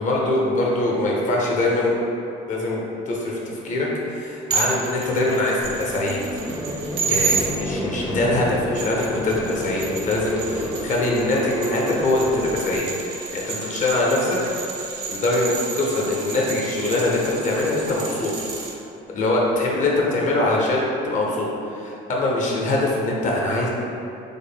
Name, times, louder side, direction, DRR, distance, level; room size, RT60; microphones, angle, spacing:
voice 1, 0.0-1.9 2.5-6.4 7.1-12.9 13.1-14.4 15.1-18.3 19.1-23.7, left 2 dB, 45° left, -3 dB, 0.7 m, -23 dB
sound 1, 4.5-7.5 8.5-18.7, right 5 dB, 85° right, 0.6 m, -31 dB
sound 2, 5.6-12.8, equal, 5° right, 0.5 m, -30 dB
3.6 x 2.0 x 3.5 m, 2.8 s
cardioid pair, 110°, 17 cm